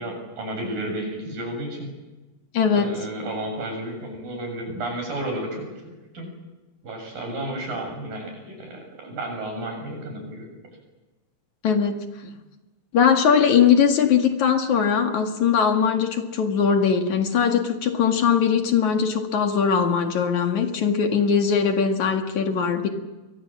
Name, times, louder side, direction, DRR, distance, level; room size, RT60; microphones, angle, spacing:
voice 1, 0.0-1.9 2.7-6.3 6.8-10.5, right 1 dB, 75° right, 3 dB, 8.8 m, -32 dB
voice 2, 2.5-2.9 11.6-12.0 12.2-12.3 12.9-22.9, left 7 dB, 60° left, 5 dB, 3.2 m, -20 dB
29.0 x 24.5 x 7.6 m, 1.1 s
omnidirectional pair, 4.0 m